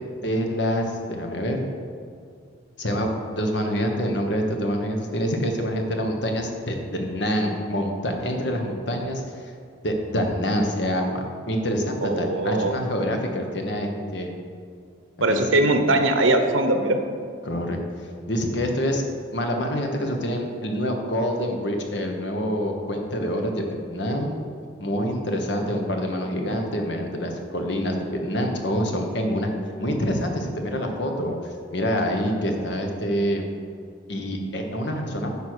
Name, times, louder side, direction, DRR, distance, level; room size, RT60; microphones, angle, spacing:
voice 1, 0.2-1.7 2.8-9.4 9.8-14.3 15.3-15.6 17.4-17.8 18.3-19.0 19.3-24.3 24.8-29.5 29.8-33.4 34.1-35.3, equal, 60° left, 3 dB, 1.2 m, -26 dB
voice 2, 12.0-12.8 15.2-17.0, right 2 dB, 90° right, 6 dB, 0.9 m, -21 dB
9.7 x 5.2 x 6.2 m, 2.3 s
head